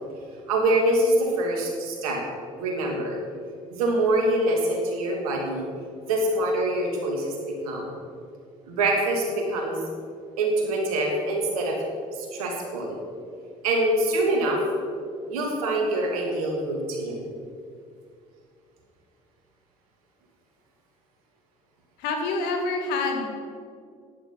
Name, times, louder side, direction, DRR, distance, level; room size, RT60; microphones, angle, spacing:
voice 1, 0.5-2.2 2.6-3.2 3.7-5.7 6.1-7.9 8.7-9.9 10.4-11.8 12.1-13.0 13.6-14.6 15.3-17.2, right 1 dB, 75° right, 1 dB, 2.4 m, -25 dB
voice 2, 22.0-23.3, left 3 dB, 65° left, 3 dB, 2.1 m, -27 dB
11.0 x 10.0 x 5.9 m, 2.2 s
figure-of-eight pair, 55°, 18 cm